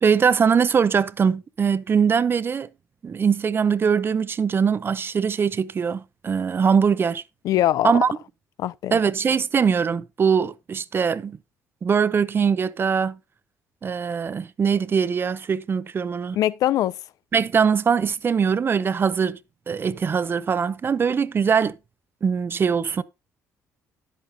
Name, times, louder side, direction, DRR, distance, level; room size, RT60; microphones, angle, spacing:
voice 1, 0.0-2.7 3.0-7.2 7.8-8.1 8.9-11.4 11.8-13.2 13.8-16.4 17.3-19.4 19.7-21.7 22.2-23.0, right 6 dB, 35° right, 0.6 m, -22 dB
voice 2, 7.4-8.0 8.6-9.0 16.3-17.0, left 13 dB, 70° left, 0.4 m, -22 dB
10.5 x 8.3 x 2.7 m
cardioid pair, 85°, 6 cm